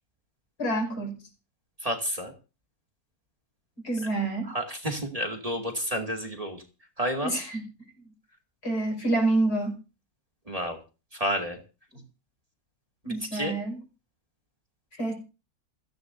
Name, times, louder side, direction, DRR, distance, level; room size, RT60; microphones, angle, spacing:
voice 1, 0.6-1.2 3.8-4.5 7.2-7.7 8.6-9.8 13.0-13.8 14.9-15.1, right 2 dB, 80° left, 3 dB, 6.1 m, -27 dB
voice 2, 1.8-2.3 4.5-6.6 7.0-7.3 10.5-10.8 11.1-11.6 13.1-13.5, equal, 20° right, 3 dB, 2.4 m, -30 dB
29.0 x 10.5 x 2.7 m, 0.32 s
omnidirectional pair, 1.7 m